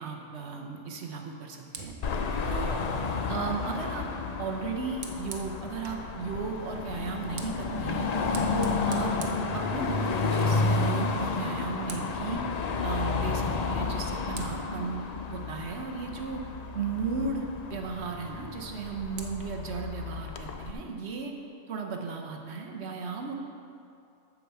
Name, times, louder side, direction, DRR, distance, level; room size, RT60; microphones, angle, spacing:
voice 1, 0.0-1.9 2.5-2.8 3.3-4.0 4.4-8.1 8.5-9.1 9.5-12.4 12.8-16.4 16.7-21.3 21.7-23.3, right 5 dB, 80° right, 2 dB, 1.2 m, -35 dB
Fire, 1.7-6.1 7.0-10.3 10.6-10.9 11.2-12.3 13.7-13.8 14.3-16.7 18.5-19.3, right 4 dB, 50° right, 0.8 m, -48 dB
Car passing by / Traffic noise roadway noise / Engine, 2.0-20.7, left 4 dB, 50° left, 0.6 m, -31 dB
8.1 x 4.9 x 7.0 m, 2.5 s
omnidirectional pair, 1.1 m